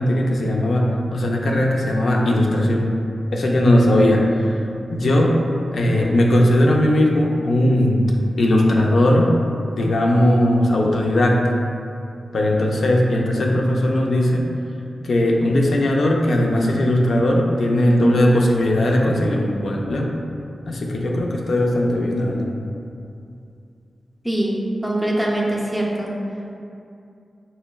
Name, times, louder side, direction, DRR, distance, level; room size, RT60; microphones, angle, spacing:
voice 1, 0.0-2.9 3.3-5.4 5.7-9.4 9.7-11.5 12.3-14.5 15.0-20.1 20.6-22.6, left 1 dB, 70° left, 0 dB, 0.4 m, -18 dB
voice 2, 24.2-24.6 24.8-26.1, right 1 dB, ahead, -3 dB, 0.4 m, -22 dB
5.5 x 2.1 x 2.2 m, 2.5 s
wide cardioid pair, 125°, 0 cm